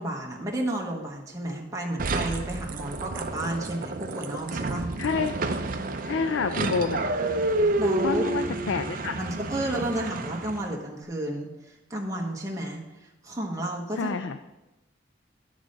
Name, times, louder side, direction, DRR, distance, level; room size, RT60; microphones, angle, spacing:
voice 1, 0.0-4.9 7.8-8.2 9.2-14.1, right 1 dB, 15° right, -2 dB, 1.0 m, -32 dB
sound 1, 2.0-10.7, right 2 dB, 45° right, 0.6 m, -29 dB
voice 2, 5.0-5.3 6.0-7.0 8.0-9.2 14.0-14.4, left 5 dB, 90° left, 9 dB, 0.4 m, -28 dB
11.0 x 4.2 x 6.4 m, 1.0 s
head